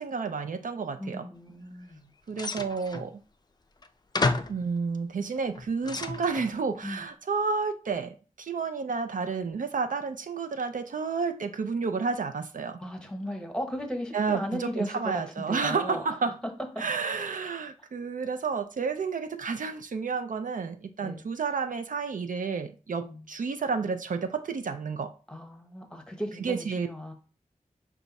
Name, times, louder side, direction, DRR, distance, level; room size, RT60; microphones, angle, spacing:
voice 1, 0.0-1.3 2.3-3.2 4.5-12.8 14.1-16.3 16.8-25.1 26.4-26.9, right 5 dB, 70° right, 0.4 m, -31 dB
voice 2, 1.0-2.1 6.8-7.0 12.8-16.0 21.0-21.3 23.0-23.2 25.3-27.1, equal, 5° left, 1.0 m, -36 dB
sound 1, 2.3-3.1 3.8-3.9 4.1-4.6 5.4-6.5, left 3 dB, 30° left, 0.4 m, -30 dB
5.0 x 2.3 x 4.0 m
wide cardioid pair, 50°, 14 cm